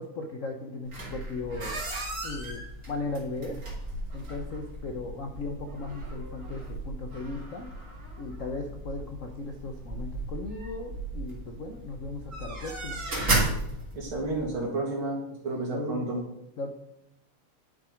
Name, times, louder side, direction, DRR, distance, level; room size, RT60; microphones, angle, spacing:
voice 1, 0.0-1.8 2.2-2.6 2.9-3.6 4.1-7.7 8.2-13.0 15.7-16.1 16.6-16.7, left 2 dB, 65° left, 3 dB, 0.8 m, -37 dB
sound 1, 0.8-14.5, right 2 dB, 35° right, 2.9 m, -35 dB
voice 2, 13.9-15.2 15.4-16.2, right 2 dB, 70° right, -2 dB, 2.6 m, -31 dB
10.0 x 6.2 x 5.0 m, 0.82 s
omnidirectional pair, 2.4 m